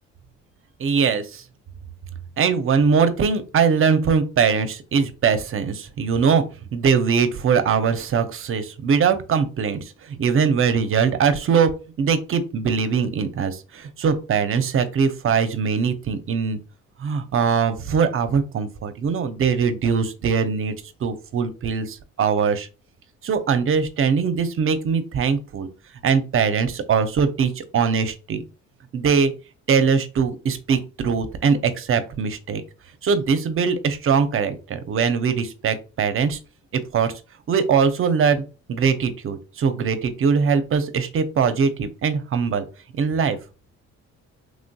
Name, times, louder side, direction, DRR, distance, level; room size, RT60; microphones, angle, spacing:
voice 1, 0.8-1.4 2.4-6.4 6.7-11.7 12.0-16.6 17.0-20.7 21.0-22.7 23.2-25.7 26.0-28.4 28.9-29.3 29.7-32.6 33.0-36.4 36.7-37.1 37.5-38.4 38.7-42.6 43.0-43.4, right 6 dB, 45° right, 10 dB, 0.5 m, -21 dB
3.1 x 2.6 x 2.2 m, 0.32 s
cardioid pair, 90°, 30 cm